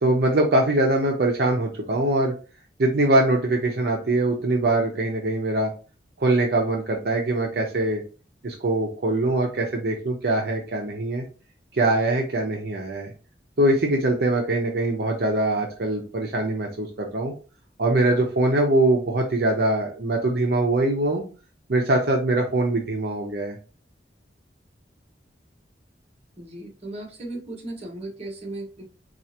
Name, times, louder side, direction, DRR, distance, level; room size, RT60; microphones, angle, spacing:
voice 1, 0.0-2.3 2.8-5.7 6.2-8.0 8.4-11.2 11.7-13.1 13.6-17.3 17.8-21.2 21.7-23.6, right 2 dB, 60° right, 0 dB, 0.7 m, -22 dB
voice 2, 26.4-28.8, right 2 dB, 35° right, -1 dB, 1.0 m, -36 dB
4.6 x 2.4 x 2.8 m, 0.35 s
head